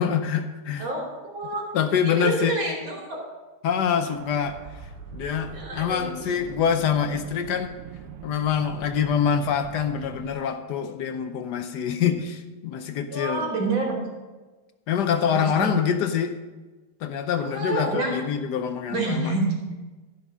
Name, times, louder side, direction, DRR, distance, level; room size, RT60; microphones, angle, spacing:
voice 1, 0.0-0.9 1.7-2.5 3.6-4.6 5.1-7.8 8.2-13.5 14.9-16.4 17.0-19.3, left 7 dB, 70° left, 8 dB, 1.0 m, -25 dB
voice 2, 0.8-1.6 2.0-3.2 5.5-6.4 13.1-14.0 15.3-15.7 17.4-18.2 18.9-19.5, right 2 dB, 65° right, -3 dB, 3.8 m, -28 dB
sound 1, 4.0-10.3, right 7 dB, 90° right, 1.7 m, -42 dB
14.5 x 6.1 x 5.4 m, 1.3 s
omnidirectional pair, 2.4 m